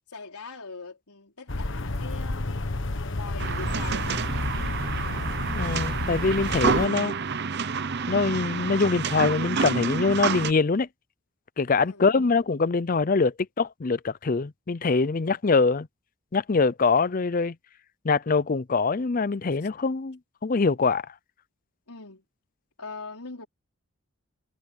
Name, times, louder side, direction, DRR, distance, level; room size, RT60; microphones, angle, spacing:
voice 1, 0.1-2.6 3.1-4.2 11.8-12.0 21.9-22.2 22.8-23.5, left 4 dB, 90° left, 4.8 m, -41 dB
sound 1, 1.5-6.9, left 2 dB, 55° left, 1.3 m, -31 dB
sound 2, 3.4-10.5, right 5 dB, 50° right, 0.7 m, -29 dB
voice 2, 5.6-7.1 8.1-10.9 11.6-15.9 16.3-17.6 18.0-21.1, left 4 dB, 40° left, 0.5 m, -24 dB
head